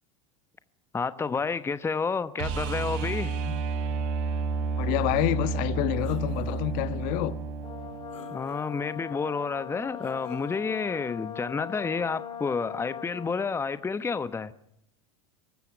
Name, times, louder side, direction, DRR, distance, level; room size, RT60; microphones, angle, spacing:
voice 1, 0.9-3.4 8.3-14.5, left 5 dB, 15° left, 1.0 m, -30 dB
sound 1, 2.4-8.3 10.8-10.9, right 5 dB, 60° right, 4.5 m, -31 dB
voice 2, 4.8-7.3, left 15 dB, 55° left, 1.5 m, -28 dB
sound 2, 6.0-6.6 7.2-7.3 8.1-8.9 10.0-10.6, left 7 dB, 80° left, 4.1 m, -50 dB
Brass instrument, 7.6-13.5, left 8 dB, 30° left, 4.9 m, -40 dB
23.5 x 14.0 x 9.8 m
hypercardioid pair, 90°, 16 cm